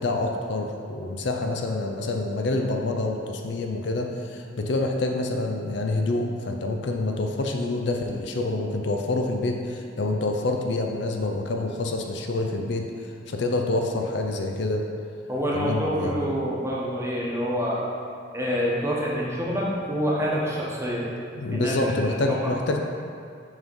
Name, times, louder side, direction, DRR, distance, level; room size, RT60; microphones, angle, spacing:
voice 1, 0.0-12.9 13.3-14.8 15.5-16.3 21.4-22.8, left 2 dB, 65° left, 2 dB, 0.5 m, -27 dB
voice 2, 15.3-17.9 18.3-21.2 21.5-21.7 22.0-22.5, equal, 15° right, -5 dB, 1.0 m, -27 dB
6.2 x 3.7 x 5.3 m, 2.3 s
head